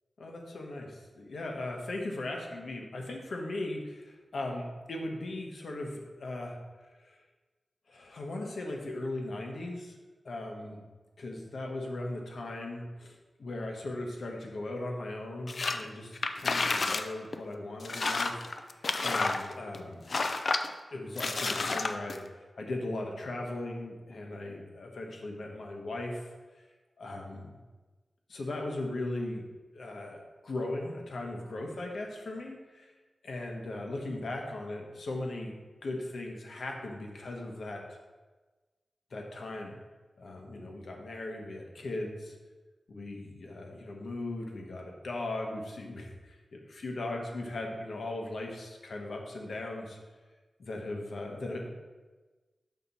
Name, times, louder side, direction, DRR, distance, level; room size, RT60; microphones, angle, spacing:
voice 1, 0.2-6.6 7.0-7.1 7.9-9.9 10.2-10.8 11.2-18.5 19.0-20.2 20.9-22.2 22.6-26.3 27.0-27.5 28.3-29.4 29.7-32.9 33.2-35.5 35.8-37.8 39.1-39.8 40.2-42.3 42.9-50.0 50.6-51.7, left 2 dB, 90° left, 1 dB, 1.1 m, -38 dB
sound 1, 15.5-15.8 16.2-17.1 17.3-17.4 17.8-19.8 20.1-20.7 21.2-22.2, left 3 dB, 60° left, 0.4 m, -30 dB
5.8 x 4.2 x 5.8 m, 1.3 s
wide cardioid pair, 90°, 0 cm